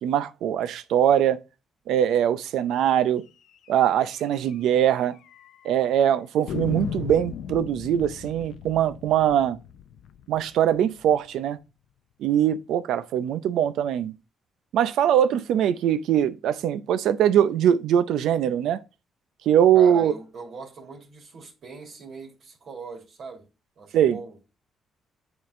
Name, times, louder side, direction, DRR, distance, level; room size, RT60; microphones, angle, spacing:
voice 1, 0.0-1.4 1.9-3.2 3.7-5.1 5.6-9.6 10.3-11.6 12.2-14.1 14.7-18.8 19.5-20.1 23.9-24.2, right 10 dB, 80° right, 0.6 m, -22 dB
sound 1, 3.7-3.8 4.1-4.2 4.5-4.6 5.2-5.8 6.5-11.3, left 9 dB, 80° left, 0.5 m, -37 dB
voice 2, 19.7-23.5 23.8-24.3, right 4 dB, 60° right, 2.5 m, -40 dB
9.4 x 3.8 x 3.7 m
cardioid pair, 90°, 0 cm